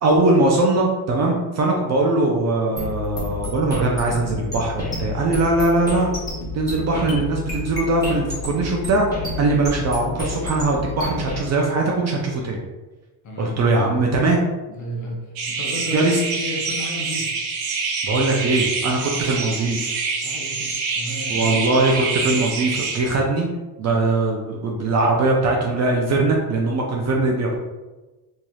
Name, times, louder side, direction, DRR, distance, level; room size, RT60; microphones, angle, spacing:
voice 1, 0.0-6.1 6.5-9.1 9.4-12.6 13.4-14.4 15.9-16.2 18.0-20.0 21.3-23.5 23.8-27.5, right 2 dB, 40° right, 0 dB, 0.4 m, -21 dB
sound 1, 2.8-11.4, left 2 dB, 10° left, 1.3 m, -30 dB
voice 2, 13.2-13.6 14.7-17.4 20.2-21.7 23.8-24.0, left 1 dB, 40° left, -1 dB, 0.8 m, -33 dB
sound 2, 15.4-23.0, right 4 dB, 75° right, 0.7 m, -26 dB
3.1 x 2.7 x 2.3 m, 1.2 s
cardioid pair, 115°, 46 cm